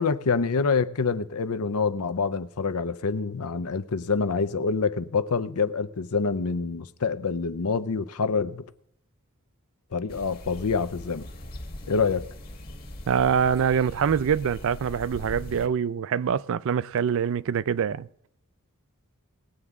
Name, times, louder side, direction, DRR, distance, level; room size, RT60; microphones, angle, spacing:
voice 1, 0.0-8.7 9.9-11.3 11.9-12.3, left 5 dB, 80° left, 0.6 m, -26 dB
sound 1, 10.1-15.7, left 1 dB, 45° left, 1.5 m, -40 dB
voice 2, 13.1-18.1, right 7 dB, 65° right, 0.4 m, -24 dB
19.5 x 8.1 x 3.7 m
head